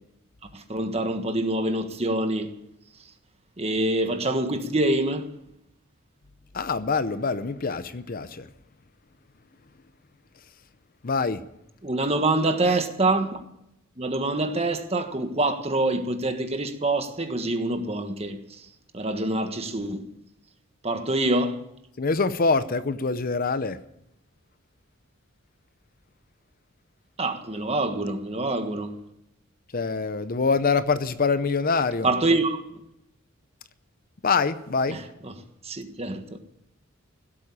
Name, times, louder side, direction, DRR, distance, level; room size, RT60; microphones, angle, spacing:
voice 1, 0.5-2.5 3.6-5.3 11.8-13.4 14.0-18.4 18.9-20.1 20.8-21.6 27.2-29.0 32.0-32.6 34.9-36.2, right 2 dB, 30° right, 1.4 m, -26 dB
voice 2, 6.5-8.5 11.0-11.4 22.0-23.8 29.7-32.1 34.2-35.0, left 4 dB, 45° left, 0.7 m, -25 dB
16.0 x 8.5 x 8.6 m
head